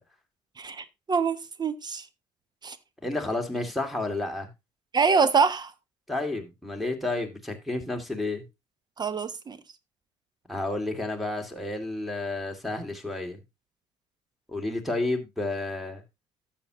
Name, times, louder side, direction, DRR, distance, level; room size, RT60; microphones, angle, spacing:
voice 1, 0.6-2.1 2.6-2.8 4.9-5.7 9.0-9.6, right 5 dB, 30° right, 1.0 m, -25 dB
voice 2, 3.0-4.5 6.1-8.4 10.5-13.4 14.5-16.0, left 2 dB, ahead, 2.4 m, -31 dB
12.5 x 7.7 x 2.9 m
hypercardioid pair, 70°, 14 cm